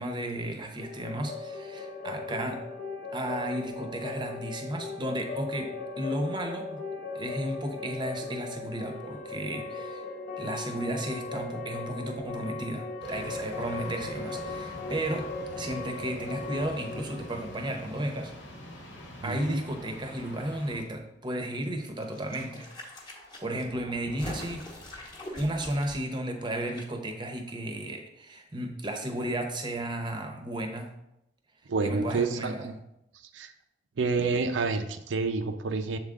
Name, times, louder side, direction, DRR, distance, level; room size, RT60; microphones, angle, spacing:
voice 1, 0.0-2.6 3.1-6.8 7.1-10.0 10.4-15.3 15.6-18.3 19.2-22.7 23.4-24.7 25.4-30.9 31.8-32.7, right 1 dB, 25° right, 4 dB, 0.7 m, -33 dB
sound 1, 0.8-18.6, left 3 dB, 45° left, 0.6 m, -38 dB
sound 2, 13.0-20.8, equal, 85° left, 1.3 m, -44 dB
voice 2, 19.2-19.6 31.7-32.8 33.3-33.5 34.0-36.0, right 4 dB, 85° right, 8 dB, 0.5 m, -29 dB
sound 3, 22.0-26.8 27.1-27.2, left 1 dB, 25° left, 1.0 m, -43 dB
7.2 x 3.7 x 3.6 m, 0.84 s
head